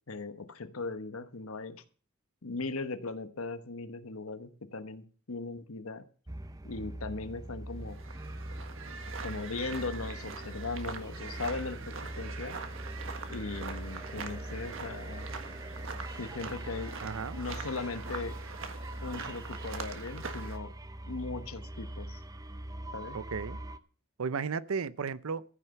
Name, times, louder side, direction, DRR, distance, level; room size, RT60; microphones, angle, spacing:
voice 1, 0.1-1.8 2.4-6.0 6.6-8.0 9.2-12.6 13.3-15.3 16.2-17.0 17.4-18.4 19.0-20.7 21.1-22.2 22.9-23.2, left 3 dB, 80° left, 1.1 m, -38 dB
sound 1, 6.3-23.8, right 1 dB, 15° right, 0.6 m, -42 dB
sound 2, 7.8-20.6, right 4 dB, 65° right, 1.6 m, -43 dB
voice 2, 17.0-17.4 23.1-23.6 24.2-25.4, right 5 dB, 80° right, 0.6 m, -34 dB
14.5 x 6.7 x 6.9 m
head